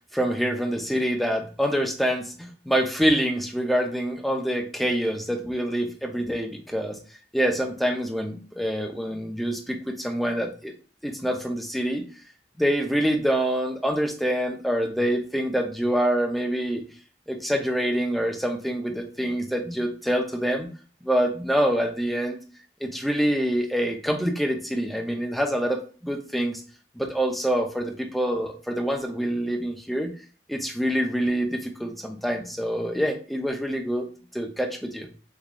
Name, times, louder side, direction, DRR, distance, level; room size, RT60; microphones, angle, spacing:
voice 1, 0.1-7.0 7.3-10.7 11.0-12.0 12.6-16.8 17.3-20.7 21.0-22.4 22.8-26.6 27.0-30.1 30.5-34.1 34.3-35.1, equal, ahead, 2 dB, 0.5 m, -26 dB
3.7 x 3.0 x 2.4 m, 0.38 s
head